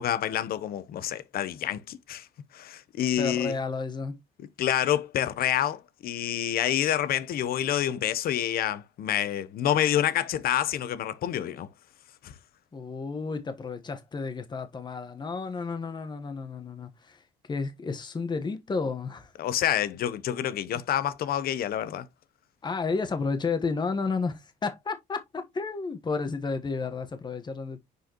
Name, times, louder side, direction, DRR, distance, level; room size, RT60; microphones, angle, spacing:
voice 1, 0.0-2.3 2.5-3.5 4.6-11.7 12.2-12.3 19.4-22.1, left 11 dB, 60° left, 0.9 m, -28 dB
voice 2, 3.2-4.2 12.7-17.2 17.5-19.3 20.7-20.8 22.6-27.8, left 4 dB, 25° left, 1.2 m, -32 dB
6.5 x 4.9 x 3.0 m
cardioid pair, 110°, 17 cm